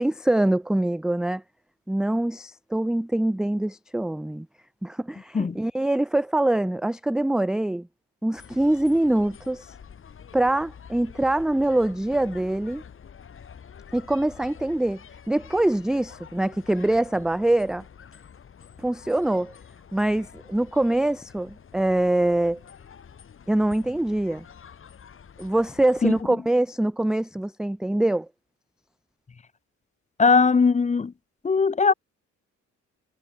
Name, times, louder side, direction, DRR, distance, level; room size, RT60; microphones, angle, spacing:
voice 1, 0.0-1.4 1.9-4.5 4.8-7.9 8.2-9.7 10.3-12.8 13.9-15.0 15.3-17.8 18.8-19.5 19.9-22.6 23.5-24.5 25.4-28.3, right 1 dB, ahead, 0.3 m, -24 dB
sound 1, 8.4-26.2, left 7 dB, 45° left, 2.0 m, -47 dB
voice 2, 30.2-31.1 31.4-31.9, left 5 dB, 25° left, 0.8 m, -19 dB
cardioid pair, 90°, 30 cm